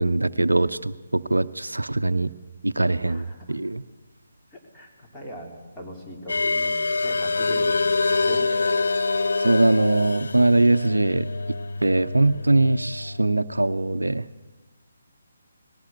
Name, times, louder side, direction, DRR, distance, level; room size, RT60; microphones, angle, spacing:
voice 1, 0.0-2.3 2.6-3.8 9.4-11.3 11.8-14.2, right 2 dB, 75° right, 14 dB, 0.6 m, -21 dB
voice 2, 3.0-3.6 4.5-8.6 9.8-9.9, equal, 10° left, -3 dB, 3.3 m, -40 dB
sound 1, 6.3-13.2, left 3 dB, 60° left, 1.0 m, -25 dB
19.5 x 17.5 x 8.2 m, 1.2 s
figure-of-eight pair, 145°, 0 cm